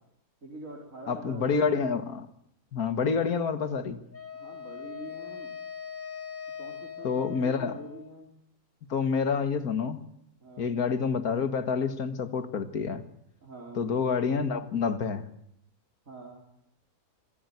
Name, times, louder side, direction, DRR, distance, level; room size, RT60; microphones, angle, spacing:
voice 1, 0.4-1.8 4.3-5.5 6.6-8.3 10.4-10.8 13.4-13.9 16.1-16.4, right 1 dB, 55° right, -1 dB, 4.6 m, -45 dB
voice 2, 1.1-2.3 2.7-4.0 7.0-7.8 8.9-10.1 10.6-13.0 13.8-15.3, left 5 dB, 75° left, 11 dB, 2.1 m, -28 dB
Wind instrument woodwind instrument, 4.1-8.3, left 7 dB, 10° left, 1.3 m, -41 dB
25.5 x 15.0 x 9.5 m, 0.74 s
omnidirectional pair, 1.6 m